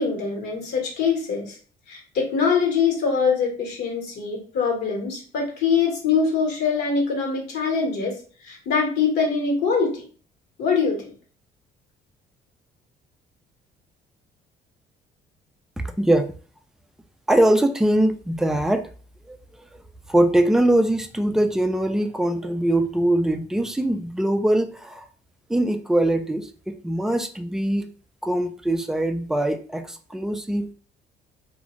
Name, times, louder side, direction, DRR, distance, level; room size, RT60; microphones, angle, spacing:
voice 1, 0.0-1.6 1.9-8.2 8.4-10.0 10.6-11.1, left 5 dB, 75° left, 0 dB, 1.4 m, -23 dB
voice 2, 15.8-16.3 17.3-18.9 19.3-19.4 20.1-25.1 25.5-27.9 28.2-30.7, right 1 dB, 5° right, 7 dB, 0.3 m, -22 dB
2.5 x 2.3 x 3.0 m, 0.42 s
cardioid pair, 110°, 17 cm